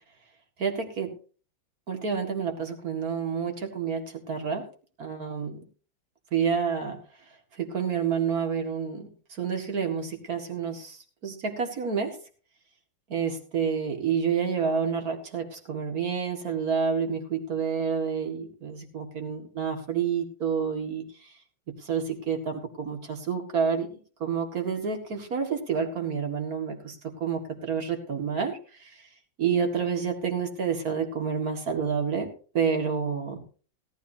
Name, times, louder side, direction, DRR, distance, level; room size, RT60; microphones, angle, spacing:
voice 1, 0.6-1.1 1.9-4.6 5.0-5.6 6.3-7.0 7.6-9.1 9.4-12.2 13.1-21.0 21.7-23.9 24.2-28.9 29.4-32.3 32.5-33.4, right 6 dB, 50° right, 4 dB, 2.5 m, -29 dB
17.5 x 13.0 x 2.8 m, 0.38 s
omnidirectional pair, 2.0 m